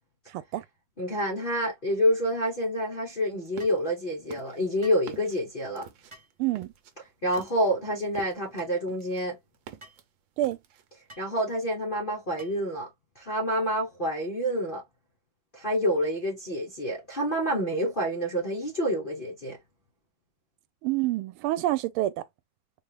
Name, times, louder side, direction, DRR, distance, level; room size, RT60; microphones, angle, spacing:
voice 1, 0.3-0.6 6.4-6.7 10.4-10.6 20.8-22.2, right 15 dB, 90° right, 1.4 m, -27 dB
voice 2, 1.0-5.9 7.2-9.4 11.2-12.9 13.2-14.8 15.5-19.6, equal, 45° left, 0.6 m, -28 dB
sound 1, 3.1-3.9 4.3-8.6 8.9-10.0 10.4-11.0, right 9 dB, 70° right, 1.4 m, -47 dB
sound 2, 3.6-3.8 4.8-5.1 6.1-6.4 7.3-7.6 8.6-8.8 9.8-10.0 11.1-11.3 12.4-12.7, right 1 dB, 45° right, 0.4 m, -50 dB
4.1 x 2.4 x 3.2 m
omnidirectional pair, 2.3 m